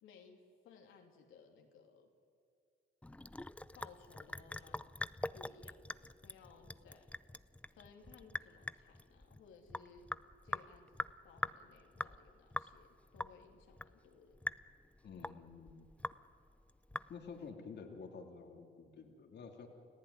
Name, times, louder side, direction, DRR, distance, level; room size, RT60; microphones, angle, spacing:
voice 1, 0.0-2.1 3.7-4.9 5.3-7.1 7.7-10.1 10.4-14.4, left 5 dB, 85° left, 2 dB, 2.9 m, -60 dB
Sink (filling or washing) / Drip, 3.0-17.5, left 1 dB, 5° left, 0.5 m, -44 dB
voice 2, 15.0-15.9 17.1-19.7, left 5 dB, 60° left, 3 dB, 2.7 m, -50 dB
29.5 x 16.0 x 9.8 m, 2.4 s
cardioid pair, 90°, 20 cm